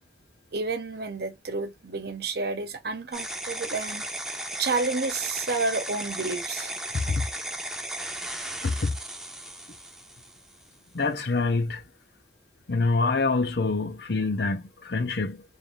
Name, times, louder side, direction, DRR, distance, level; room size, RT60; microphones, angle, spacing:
voice 1, 0.5-4.1 4.6-6.7, right 3 dB, 65° right, 0.9 m, -30 dB
sound 1, 3.1-10.6, right 1 dB, 5° right, 0.7 m, -35 dB
voice 2, 6.9-7.3 8.6-8.9 10.9-11.8 12.7-15.4, left 3 dB, 70° left, 0.8 m, -26 dB
3.4 x 2.7 x 3.5 m
head